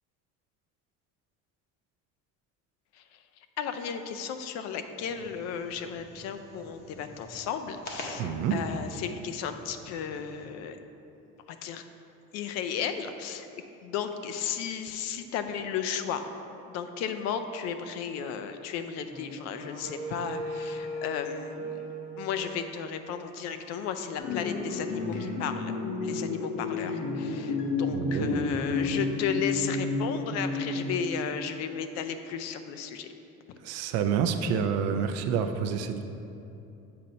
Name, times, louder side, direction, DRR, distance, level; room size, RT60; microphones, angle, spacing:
voice 1, 3.6-10.8 11.5-11.8 12.3-13.5 13.8-16.2 16.7-21.8 22.2-25.7 26.0-33.1, left 7 dB, 60° left, 9 dB, 0.4 m, -34 dB
sound 1, 5.0-10.5, left 1 dB, 35° left, 0.7 m, -46 dB
voice 2, 8.2-8.6 27.9-28.6 33.6-36.0, right 7 dB, 60° right, 8 dB, 0.4 m, -28 dB
Wind instrument woodwind instrument, 19.1-23.3, equal, 30° right, 1.2 m, -39 dB
sound 2, 24.2-31.3, left 3 dB, 85° left, 1.0 m, -31 dB
7.5 x 2.8 x 5.2 m, 2.8 s
cardioid pair, 160°, 29 cm